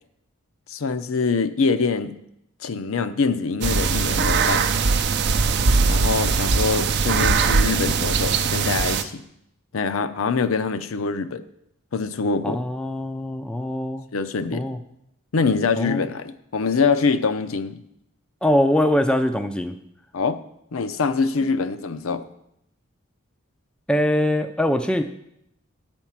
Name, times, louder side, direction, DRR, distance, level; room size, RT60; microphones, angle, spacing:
voice 1, 0.7-2.1 2.6-4.7 5.9-9.2 9.7-11.4 11.9-12.6 14.1-14.7 15.3-17.8 20.1-20.4 20.7-22.2, left 4 dB, 75° left, 11 dB, 0.6 m, -24 dB
sound 1, 3.6-9.0, right 4 dB, 50° right, 0.5 m, -20 dB
voice 2, 12.4-14.1 14.5-14.8 15.8-16.1 18.4-19.8 23.9-25.0, left 1 dB, 5° left, 7 dB, 0.3 m, -22 dB
9.8 x 4.4 x 7.3 m, 0.78 s
head